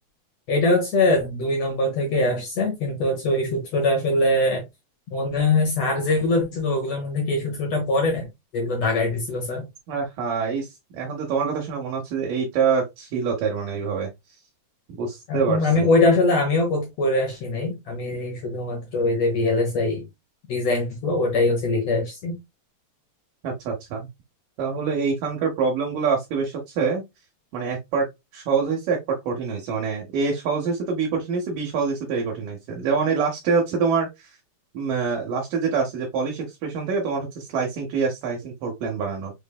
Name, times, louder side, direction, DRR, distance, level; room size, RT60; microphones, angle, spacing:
voice 1, 0.5-4.6 5.1-8.3 8.5-9.6 15.3-20.0 20.5-22.4, left 2 dB, 75° left, 1.5 m, -22 dB
voice 2, 9.9-14.1 14.9-15.9 23.4-24.1 24.6-27.0 27.5-28.1 28.3-34.4 34.7-39.3, right 5 dB, 70° right, 2.1 m, -25 dB
6.2 x 3.2 x 2.2 m
omnidirectional pair, 4.6 m